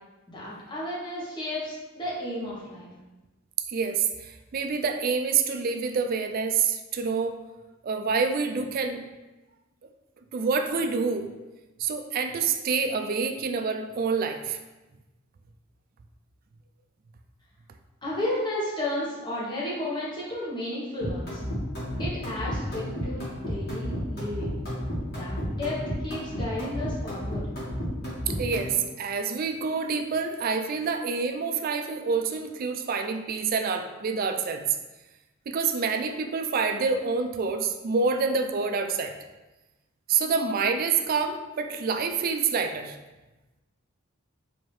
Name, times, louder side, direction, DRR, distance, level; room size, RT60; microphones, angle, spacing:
voice 1, 0.3-2.9 18.0-21.4 22.0-24.5 25.1-25.8 26.0-27.5, left 1 dB, 20° left, -6 dB, 1.0 m, -33 dB
voice 2, 3.7-7.4 7.8-9.0 10.3-11.3 11.8-14.6 28.3-34.6 35.5-39.1 40.1-43.0, right 5 dB, 45° right, 6 dB, 0.3 m, -27 dB
sound 1, 21.0-28.7, equal, 50° left, 1.4 m, -32 dB
4.5 x 2.7 x 3.1 m, 1.1 s
head